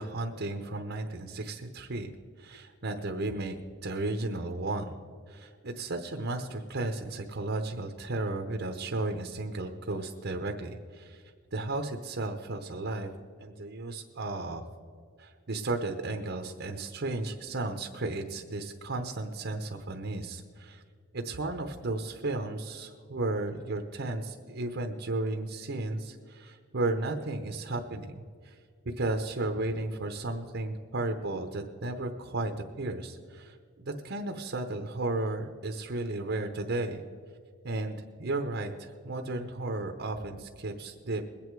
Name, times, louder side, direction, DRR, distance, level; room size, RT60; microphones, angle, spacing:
voice 1, 0.0-2.1 2.4-5.0 5.3-11.2 11.5-13.1 13.4-14.6 15.2-20.8 21.1-28.6 28.8-37.0 37.6-41.2, right 2 dB, 55° right, 4 dB, 0.9 m, -34 dB
21.5 x 8.6 x 4.7 m, 2.1 s
head